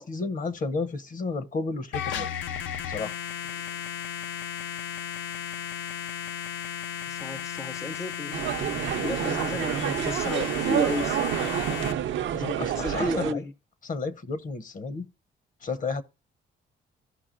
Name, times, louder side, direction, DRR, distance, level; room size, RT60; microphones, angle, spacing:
voice 1, 0.0-2.3 2.9-3.2 12.3-13.4 13.8-15.1 15.6-16.0, left 4 dB, 40° left, 0.8 m, -32 dB
sound 1, 1.9-11.9, left 9 dB, 75° left, 0.5 m, -35 dB
voice 2, 3.4-3.9 7.1-8.4 9.0-11.9 12.7-13.5, left 1 dB, 15° left, 0.4 m, -33 dB
sound 2, 8.3-13.3, right 11 dB, 70° right, 0.6 m, -28 dB
15.0 x 5.4 x 2.5 m
cardioid pair, 90°, 20 cm